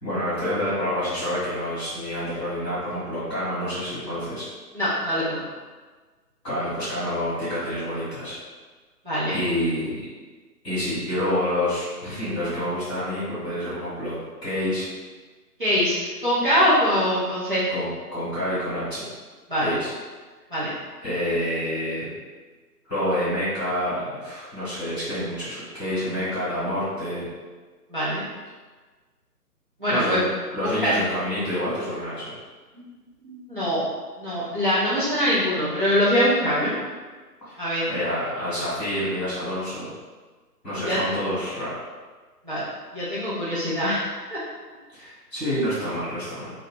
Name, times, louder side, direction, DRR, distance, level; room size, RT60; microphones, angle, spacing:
voice 1, 0.0-4.4 6.4-8.4 9.3-10.0 10.6-14.8 17.7-19.0 19.6-19.9 21.0-22.1 22.8-27.2 29.9-30.2 30.5-32.3 37.5-37.6 37.9-39.9 40.6-41.7 44.9-46.5, equal, 5° left, -18 dB, 0.9 m, -28 dB
voice 2, 4.7-5.4 9.1-9.4 15.6-15.9 16.2-17.6 19.5-19.7 20.5-20.7 27.9-28.2 29.8-30.2 30.6-30.9 33.2-33.8 34.2-36.7 37.6-37.8 40.8-41.0 42.4-42.6 42.9-44.0 44.3-44.4, equal, 35° right, -11 dB, 0.6 m, -23 dB
2.7 x 2.7 x 3.3 m, 1.4 s
figure-of-eight pair, 150°, 48 cm